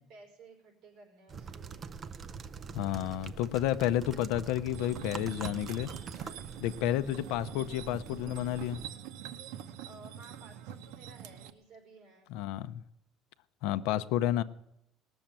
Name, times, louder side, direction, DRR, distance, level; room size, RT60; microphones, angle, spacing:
voice 1, 0.0-1.9 9.8-12.3, right 3 dB, 50° right, 5.0 m, -55 dB
sound 1, 1.3-8.9, right 5 dB, 25° right, 0.5 m, -44 dB
voice 2, 2.7-5.9 6.2-6.3 6.6-8.9 12.3-12.8 13.6-14.4, left 13 dB, 75° left, 0.6 m, -31 dB
sound 2, 4.7-11.5, right 10 dB, 75° right, 0.8 m, -45 dB
19.0 x 7.1 x 8.9 m
cardioid pair, 180°, 0 cm